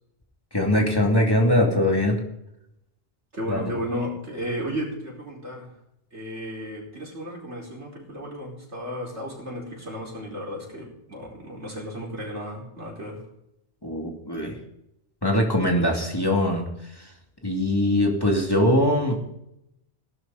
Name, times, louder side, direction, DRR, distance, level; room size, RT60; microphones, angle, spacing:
voice 1, 0.5-2.2 3.5-3.7 13.8-14.6 15.2-16.7 16.9-17.1 17.4-19.2, left 1 dB, 20° left, 0 dB, 2.6 m, -22 dB
voice 2, 3.3-5.7 6.1-13.2, equal, 85° right, -2 dB, 5.1 m, -34 dB
18.0 x 12.0 x 4.1 m, 0.80 s
omnidirectional pair, 1.2 m